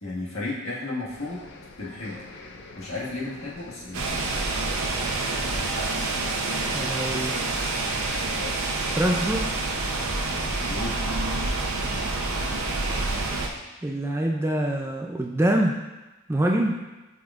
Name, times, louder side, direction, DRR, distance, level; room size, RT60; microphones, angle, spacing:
voice 1, 0.0-1.5 1.8-2.2 2.8-4.4 10.4-10.9, left 2 dB, 70° left, -6 dB, 1.7 m, -34 dB
sound 1, 1.1-9.0, left 3 dB, 55° left, 0.5 m, -45 dB
sound 2, 3.9-13.5, right 2 dB, 75° right, 0.7 m, -27 dB
voice 2, 6.7-7.4 8.9-9.5 13.8-15.8 16.3-16.8, right 1 dB, 10° right, 1 dB, 0.3 m, -25 dB
7.9 x 4.9 x 2.4 m, 1.1 s
head